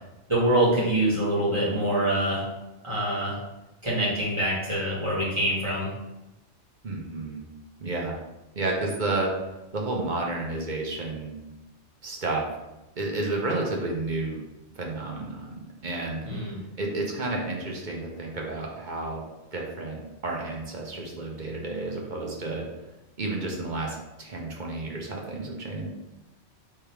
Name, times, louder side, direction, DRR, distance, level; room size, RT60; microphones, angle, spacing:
voice 1, 0.3-2.5 2.8-3.4 3.8-5.9 16.2-16.6, right 1 dB, 25° right, -8 dB, 1.8 m, -25 dB
voice 2, 6.8-7.4 7.8-8.2 8.5-9.3 9.7-11.3 12.0-12.5 13.0-14.4 14.8-16.3 16.8-19.2 19.5-22.7 23.2-25.9, right 2 dB, 45° right, -1 dB, 0.8 m, -31 dB
3.4 x 3.4 x 4.5 m, 0.97 s
omnidirectional pair, 1.2 m